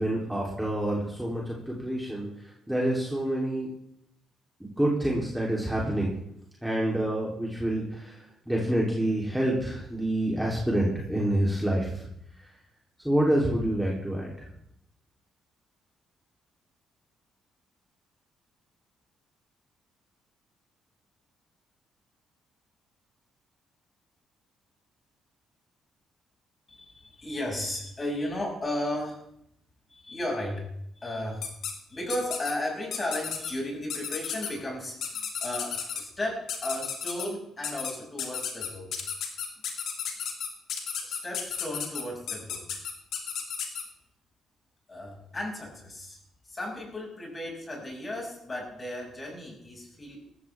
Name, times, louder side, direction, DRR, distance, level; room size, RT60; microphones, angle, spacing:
voice 1, 0.0-2.3 2.7-3.7 4.8-6.1 6.6-8.2 8.5-12.1 13.0-14.3, right 1 dB, 5° right, -4 dB, 3.5 m, -27 dB
voice 2, 26.7-29.3 29.9-31.5 31.9-38.9 41.0-42.6 44.9-46.2 46.5-50.2, left 1 dB, 25° left, -1 dB, 6.9 m, -35 dB
sound 1, 31.4-31.7 32.1-32.5 32.9-33.5 33.9-34.5 35.0-36.0 36.5-37.3 37.6-37.9 38.2-43.8, left 8 dB, 75° left, 2.4 m, -33 dB
18.0 x 14.5 x 3.6 m, 0.73 s
cardioid pair, 90°, 0 cm